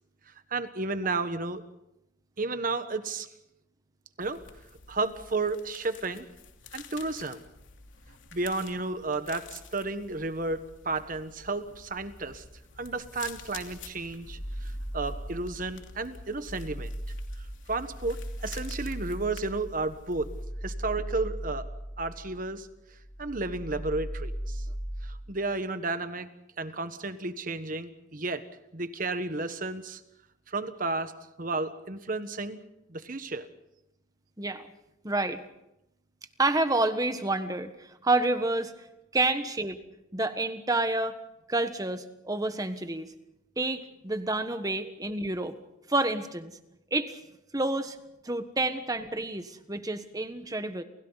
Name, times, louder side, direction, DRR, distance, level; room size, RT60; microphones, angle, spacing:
voice 1, 0.5-1.6 2.4-3.3 4.2-4.4 4.9-6.3 6.7-7.4 8.3-12.4 12.8-16.9 17.7-20.3 20.6-21.7 22.0-22.7 23.2-24.6 25.0-26.3 26.6-28.4 28.7-30.0 30.5-32.6 32.9-33.5, right 3 dB, 45° right, 10 dB, 1.4 m, -32 dB
sound 1, 4.2-20.4, left 4 dB, 75° left, 3.0 m, -49 dB
sound 2, 14.2-15.7 16.1-22.6 22.9-25.2, equal, 25° left, 2.8 m, -38 dB
voice 2, 34.4-34.7 35.0-35.4 36.4-38.7 39.1-39.8 40.1-41.2 41.5-43.1 43.6-45.6 45.9-46.5 46.9-47.2 47.5-48.0 48.2-50.8, right 2 dB, 20° right, 9 dB, 1.4 m, -29 dB
29.5 x 28.5 x 4.1 m, 0.88 s
head